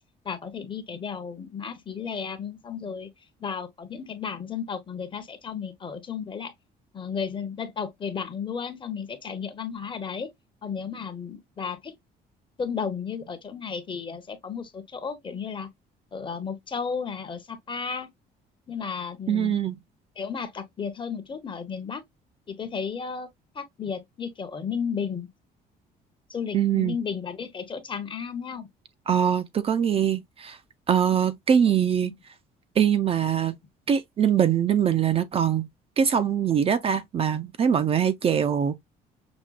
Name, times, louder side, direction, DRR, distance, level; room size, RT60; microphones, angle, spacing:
voice 1, 0.2-3.1 3.4-6.5 6.9-10.3 10.6-12.0 12.6-15.7 16.1-18.1 18.7-19.6 20.2-22.0 22.5-23.3 23.5-25.3 26.3-28.7 32.0-32.1, left 6 dB, 30° left, 0.8 m, -33 dB
voice 2, 19.3-19.7 26.5-27.0 29.1-30.6 30.9-32.2 32.8-33.5 33.9-35.7 36.0-38.8, right 8 dB, 35° right, 0.4 m, -23 dB
5.9 x 2.2 x 2.2 m
cardioid pair, 110°, 17 cm